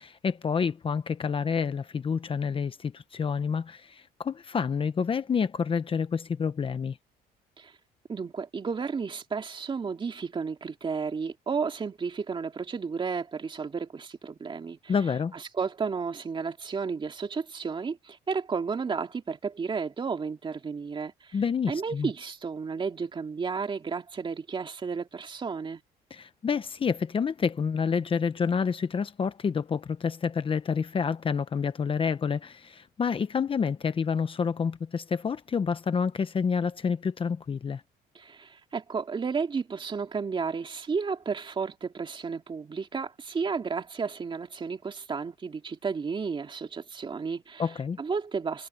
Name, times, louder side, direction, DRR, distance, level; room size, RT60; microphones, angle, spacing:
voice 1, 0.0-7.0 14.9-15.3 21.3-22.1 26.1-37.8 47.6-48.0, left 6 dB, 30° left, 1.0 m, -28 dB
voice 2, 8.1-14.9 15.3-21.4 21.7-25.8 38.1-47.7 48.0-48.7, right 5 dB, 30° right, 2.5 m, -32 dB
cardioid pair, 110°, 17 cm